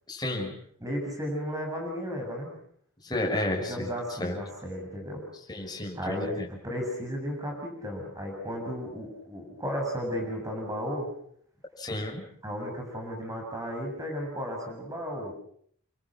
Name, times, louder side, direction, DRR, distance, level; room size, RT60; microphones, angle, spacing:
voice 1, 0.1-0.5 3.0-3.9 4.2-4.3 5.5-6.5 11.8-12.2, left 1 dB, 20° left, 0 dB, 6.6 m, -31 dB
voice 2, 0.8-2.5 3.6-5.3 5.9-11.1 12.4-15.3, equal, 15° right, 2 dB, 7.1 m, -34 dB
29.5 x 25.0 x 6.3 m, 0.63 s
head